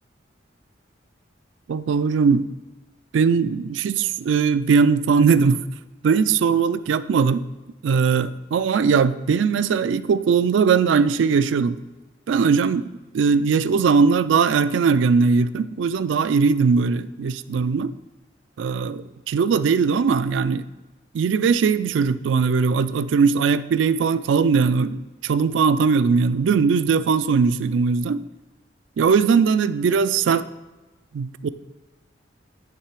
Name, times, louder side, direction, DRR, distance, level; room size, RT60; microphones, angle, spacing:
voice 1, 1.7-2.5 3.1-5.6 6.0-7.4 7.8-11.8 12.3-17.9 18.6-20.7 21.1-28.2 29.0-30.5 31.1-31.5, right 5 dB, 80° right, 13 dB, 0.3 m, -20 dB
9.5 x 3.3 x 4.7 m, 1.1 s
head